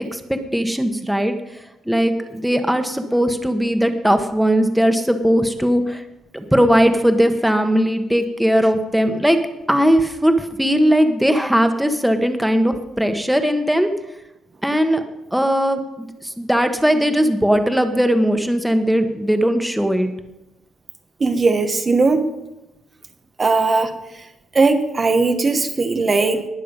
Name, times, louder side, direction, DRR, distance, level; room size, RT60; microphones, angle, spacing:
voice 1, 0.1-1.3 1.9-6.0 6.3-9.4 9.7-13.9 14.6-15.0 15.3-16.1 16.4-20.1, equal, 5° right, 7 dB, 1.2 m, -18 dB
voice 2, 21.2-22.2 23.4-23.9 24.5-26.5, right 3 dB, 35° right, 6 dB, 1.0 m, -18 dB
19.5 x 6.6 x 5.2 m, 0.95 s
cardioid pair, 90°, 0 cm